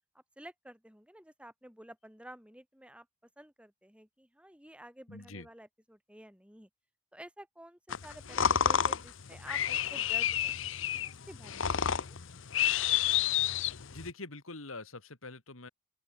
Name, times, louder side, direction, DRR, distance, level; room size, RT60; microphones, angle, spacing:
voice 1, 0.1-3.1 3.4-6.7 7.1-12.2, right 1 dB, 5° right, 5.7 m, -52 dB
voice 2, 5.1-5.5 13.9-15.7, left 2 dB, 85° left, 3.1 m, -44 dB
sound 1, 7.9-14.1, left 9 dB, 65° left, 0.9 m, -30 dB
open air
head